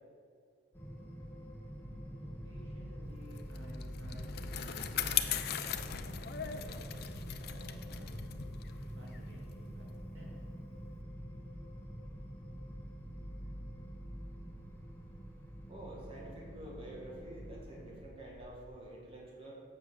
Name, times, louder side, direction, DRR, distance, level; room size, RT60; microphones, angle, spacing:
sound 1, 0.7-18.0, equal, 10° left, 1.1 m, -46 dB
sound 2, 1.6-18.8, equal, 70° right, 0.7 m, -57 dB
voice 1, 2.4-9.9 10.1-10.3, equal, 85° right, -4 dB, 2.3 m, -54 dB
Bicycle, 3.4-10.1, left 10 dB, 60° left, 0.5 m, -39 dB
voice 2, 15.7-19.5, right 1 dB, 30° right, -4 dB, 1.9 m, -48 dB
7.6 x 6.6 x 6.5 m, 2.1 s
head